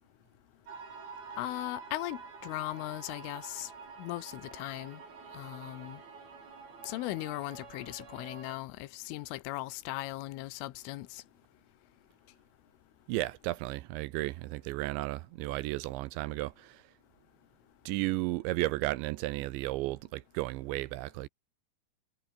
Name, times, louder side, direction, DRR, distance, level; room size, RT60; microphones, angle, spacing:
sound 1, 0.7-8.6, right 5 dB, 50° right, 7.3 m, -48 dB
voice 1, 1.4-3.7 4.0-5.0 5.3-6.0 6.9-11.2, left 18 dB, 80° left, 3.5 m, -38 dB
voice 2, 13.1-16.9 17.9-21.3, right 18 dB, 80° right, 2.8 m, -34 dB
omnidirectional pair, 5.7 m